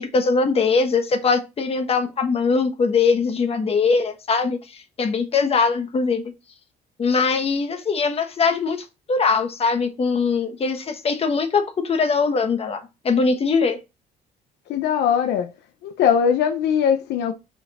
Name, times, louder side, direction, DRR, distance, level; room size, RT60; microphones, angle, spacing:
voice 1, 0.0-4.6 5.0-6.2 7.0-12.8 13.0-13.8, left 4 dB, 35° left, 1.4 m, -21 dB
voice 2, 14.7-15.5 15.8-17.3, left 8 dB, 80° left, 1.0 m, -20 dB
5.7 x 4.8 x 4.2 m
cardioid pair, 110°, 17 cm